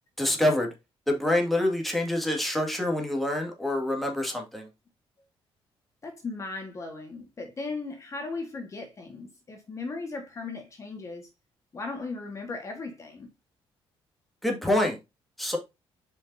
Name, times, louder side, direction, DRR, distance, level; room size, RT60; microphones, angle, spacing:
voice 1, 0.2-0.7 1.1-4.7 14.4-15.0 15.4-15.6, left 1 dB, ahead, 2.2 m, -26 dB
voice 2, 6.0-11.3 11.7-13.3, left 3 dB, 30° left, 1.6 m, -37 dB
7.3 x 5.4 x 2.8 m
cardioid pair, 130°, 10 cm